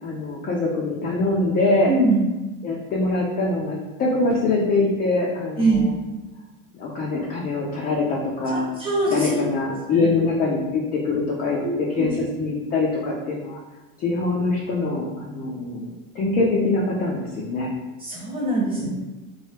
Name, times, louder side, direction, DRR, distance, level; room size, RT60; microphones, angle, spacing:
voice 1, 0.0-1.9 2.6-5.9 6.7-8.7 9.1-13.6 14.0-17.7 18.8-18.9, left 3 dB, 25° left, -3 dB, 0.4 m, -24 dB
voice 2, 1.9-2.2 5.6-5.8 8.5-9.4 10.0-10.1 11.6-12.1 18.0-18.9, right 2 dB, 15° right, -5 dB, 1.1 m, -23 dB
3.1 x 2.2 x 3.2 m, 1.1 s
supercardioid pair, 120°, 38 cm